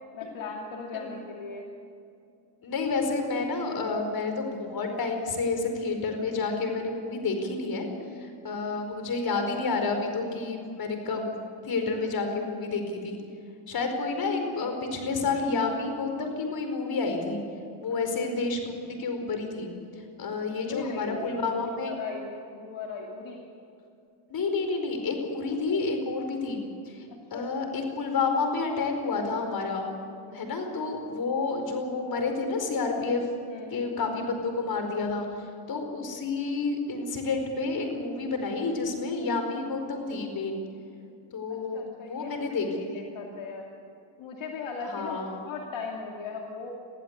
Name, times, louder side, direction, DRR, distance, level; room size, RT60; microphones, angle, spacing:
voice 1, 0.1-1.7 20.6-21.4 21.8-23.4 25.7-25.8 27.1-27.7 30.2-30.5 33.5-34.0 35.1-35.2 41.5-43.7 44.2-46.7, left 5 dB, 65° left, 0 dB, 2.7 m, -39 dB
voice 2, 2.6-7.9 8.2-11.3 11.6-13.2 13.7-17.4 17.8-18.7 19.0-19.7 20.2-21.9 24.3-26.6 26.8-27.0 27.3-29.9 30.3-33.2 33.5-35.2 35.7-40.6 41.3-43.1 44.8-45.4, left 3 dB, 45° left, 5 dB, 4.9 m, -29 dB
23.0 x 15.5 x 8.3 m, 2.5 s
cardioid pair, 105°, 50 cm